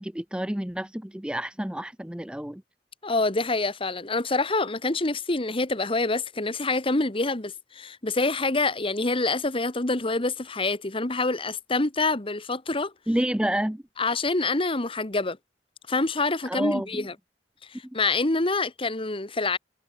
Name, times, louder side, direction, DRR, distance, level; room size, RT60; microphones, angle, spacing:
voice 1, 0.0-2.6 13.1-13.8 16.5-17.1, right 1 dB, 5° right, 0.6 m, -29 dB
voice 2, 3.0-12.9 14.0-15.4 15.9-17.1 17.7-19.6, left 3 dB, 30° left, 1.5 m, -26 dB
head